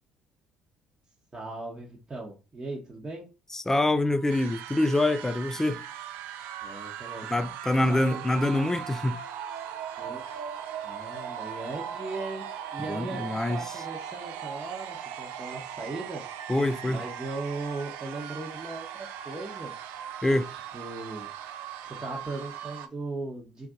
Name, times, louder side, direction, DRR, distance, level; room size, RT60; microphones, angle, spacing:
voice 1, 1.3-3.3 6.6-7.3 7.9-8.2 10.0-10.3 10.8-16.2 16.9-19.7 20.3-21.3 21.8-23.7, right 2 dB, 25° right, 0.9 m, -38 dB
voice 2, 3.5-5.8 7.3-9.2 12.9-13.6 16.5-17.0 20.2-20.5, left 1 dB, 10° left, 0.3 m, -25 dB
Wind instrument woodwind instrument, 4.0-13.9, right 8 dB, 50° right, 1.5 m, -49 dB
sound 1, 4.3-22.9, right 9 dB, 70° right, 0.3 m, -39 dB
2.5 x 2.4 x 3.8 m
hypercardioid pair, 55°, 4 cm